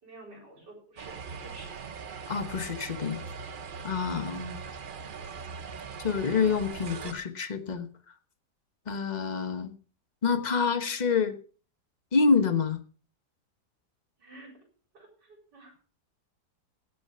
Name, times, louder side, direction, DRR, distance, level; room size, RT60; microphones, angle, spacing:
voice 1, 0.0-1.8 14.2-14.6 14.9-15.7, right 2 dB, 80° right, 2 dB, 5.2 m, -50 dB
sound 1, 1.0-7.1, right 5 dB, 45° right, 0.7 m, -41 dB
voice 2, 2.3-3.3 3.8-4.6 6.0-7.9 8.9-9.7 10.2-11.4 12.1-12.8, left 5 dB, 30° left, 10 dB, 1.0 m, -27 dB
17.0 x 7.1 x 5.5 m, 0.40 s
omnidirectional pair, 1.8 m